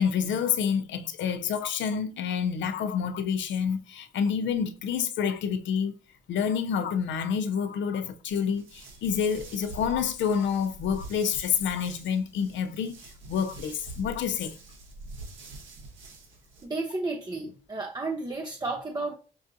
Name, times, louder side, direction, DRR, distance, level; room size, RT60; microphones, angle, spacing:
voice 1, 0.0-5.9 6.3-13.0 13.3-14.6, left 7 dB, 70° left, 0.5 m, -28 dB
sound 1, 8.3-16.6, right 2 dB, 80° right, 1.2 m, -45 dB
voice 2, 16.6-19.2, right 3 dB, 20° right, 0.5 m, -32 dB
5.3 x 2.4 x 2.6 m
cardioid pair, 90°, 20 cm